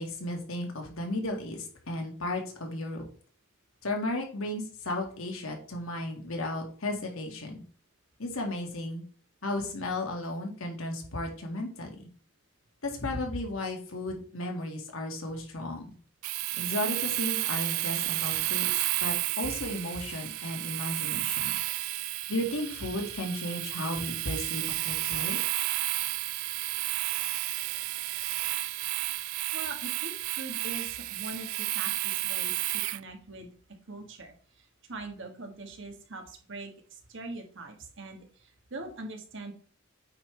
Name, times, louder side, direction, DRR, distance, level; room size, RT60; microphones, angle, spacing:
voice 1, 0.0-3.0 3.8-7.6 8.2-9.0 9.4-12.0 12.8-15.9 16.6-18.7 19.0-21.5 22.3-25.4, left 1 dB, 85° left, 2 dB, 2.0 m, -34 dB
Domestic sounds home sounds, 16.2-33.0, right 19 dB, 80° right, 0.3 m, -32 dB
voice 2, 29.5-33.5 33.9-39.5, right 2 dB, 60° right, 4 dB, 1.6 m, -42 dB
8.6 x 5.4 x 3.4 m, 0.43 s
head